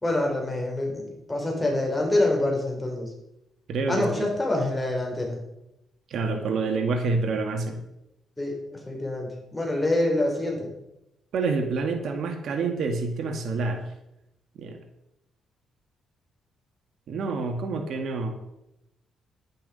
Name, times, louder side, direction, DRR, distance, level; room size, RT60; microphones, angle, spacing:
voice 1, 0.0-3.1 3.9-5.4 8.4-10.7, left 1 dB, 15° left, 0 dB, 4.9 m, -26 dB
voice 2, 3.7-4.3 6.1-7.8 11.3-13.9 14.6-14.8 17.1-18.4, right 3 dB, 65° right, 5 dB, 1.9 m, -27 dB
11.0 x 10.5 x 5.5 m, 0.86 s
cardioid pair, 90°, 0 cm